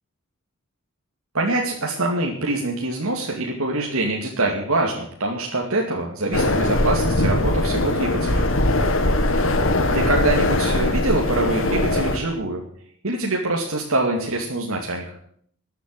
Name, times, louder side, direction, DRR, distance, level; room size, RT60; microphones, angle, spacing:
voice 1, 1.3-8.5 9.9-12.6 13.0-15.1, right 2 dB, 85° right, -1 dB, 2.5 m, -24 dB
sound 1, 6.3-12.2, left 1 dB, 65° left, 2.0 m, -21 dB
13.5 x 8.3 x 9.8 m, 0.63 s
head